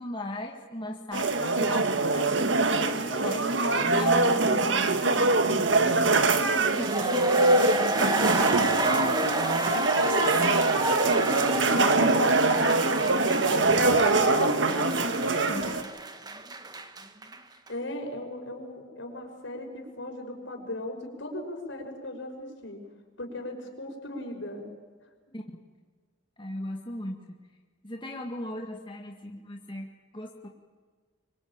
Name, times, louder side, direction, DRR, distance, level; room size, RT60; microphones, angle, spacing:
voice 1, 0.0-7.2 11.8-13.3 13.7-15.8 25.3-25.4 26.4-27.4 27.8-30.5, left 1 dB, 25° left, 1 dB, 1.9 m, -37 dB
sound 1, 1.1-15.8, right 3 dB, 70° right, 1.7 m, -24 dB
sound 2, 6.5-17.4 17.7-17.8, right 2 dB, 20° right, 1.5 m, -31 dB
voice 2, 7.9-10.8 11.3-11.7 17.7-22.8 23.2-24.7, left 1 dB, 75° left, 3 dB, 5.8 m, -37 dB
24.5 x 24.5 x 8.9 m, 1.5 s
head